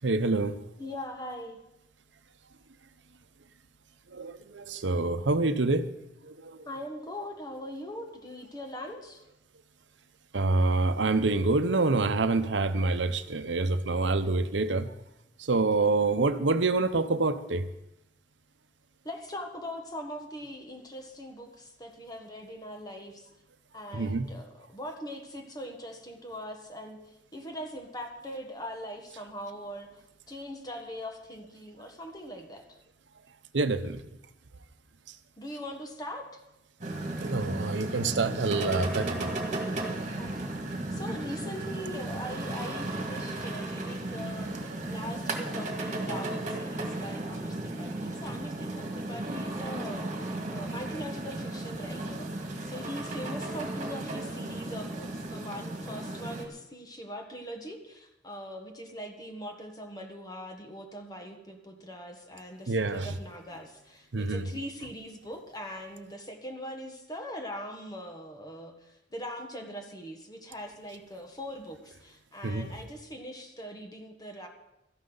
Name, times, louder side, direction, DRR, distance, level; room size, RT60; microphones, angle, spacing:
voice 1, 0.0-0.6 4.1-5.9 6.2-6.6 10.3-14.9 15.4-17.7 23.9-24.3 33.5-34.0 37.2-39.3 62.7-63.1 64.1-64.5 72.4-72.7, right 3 dB, 80° right, 0.8 m, -27 dB
voice 2, 0.8-1.6 6.6-9.2 15.5-15.9 19.0-23.3 23.7-30.0 30.3-32.8 35.4-36.3 40.2-40.5 40.9-74.5, equal, 20° left, 1.5 m, -41 dB
sound 1, 36.8-56.5, right 2 dB, 40° right, 2.0 m, -35 dB
17.0 x 13.5 x 4.0 m
head